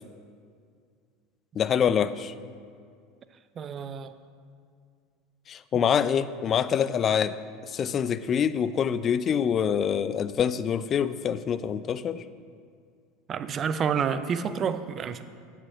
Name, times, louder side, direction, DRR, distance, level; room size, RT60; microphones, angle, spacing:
voice 1, 1.6-2.3 5.5-7.4 7.6-12.2, left 8 dB, 35° left, 15 dB, 0.4 m, -25 dB
voice 2, 3.6-4.1 5.7-5.8 13.3-15.2, right 7 dB, 35° right, 12 dB, 0.6 m, -29 dB
9.0 x 7.7 x 5.8 m, 2.2 s
hypercardioid pair, 80°, 0 cm